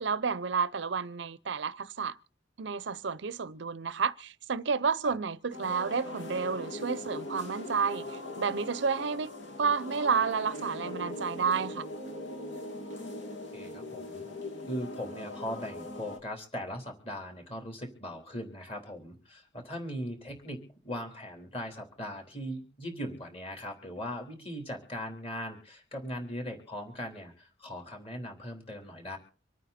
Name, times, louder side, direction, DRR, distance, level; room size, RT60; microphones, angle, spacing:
voice 1, 0.0-2.2 2.6-8.1 8.4-9.3 9.6-11.9, right 5 dB, 65° right, 0.6 m, -30 dB
sound 1, 5.5-16.2, left 1 dB, 70° left, 2.4 m, -40 dB
voice 2, 13.5-14.3 14.7-29.2, equal, 30° left, 3.7 m, -39 dB
26.0 x 9.2 x 4.3 m
head